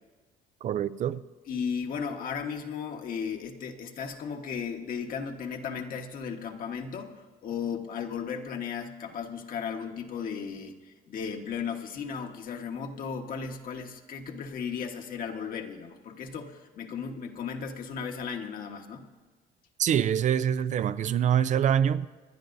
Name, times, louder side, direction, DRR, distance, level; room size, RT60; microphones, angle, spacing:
voice 1, 0.6-1.2 19.8-22.1, right 9 dB, 45° right, 0.4 m, -25 dB
voice 2, 1.5-10.7 11.1-19.1, left 6 dB, 55° left, 1.4 m, -35 dB
27.0 x 10.5 x 2.6 m
cardioid pair, 110°, 17 cm